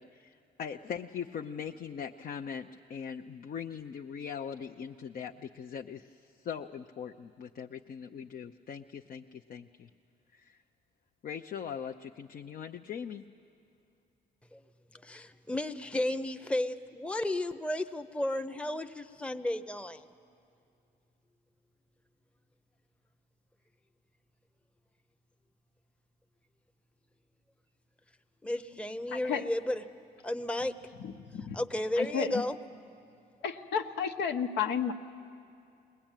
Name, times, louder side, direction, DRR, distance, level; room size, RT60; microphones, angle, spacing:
voice 1, 0.0-6.1 6.4-9.9 10.3-10.6 11.2-13.3, left 7 dB, 55° left, 4 dB, 0.7 m, -41 dB
voice 2, 15.0-20.0 28.4-29.8 30.2-30.8 31.5-32.6, left 1 dB, 5° left, 7 dB, 0.8 m, -33 dB
voice 3, 29.1-29.5 31.0-31.6 32.0-32.4 33.4-34.9, left 7 dB, 80° left, 4 dB, 1.1 m, -32 dB
21.0 x 20.5 x 9.0 m, 2.5 s
cardioid pair, 80°, 18 cm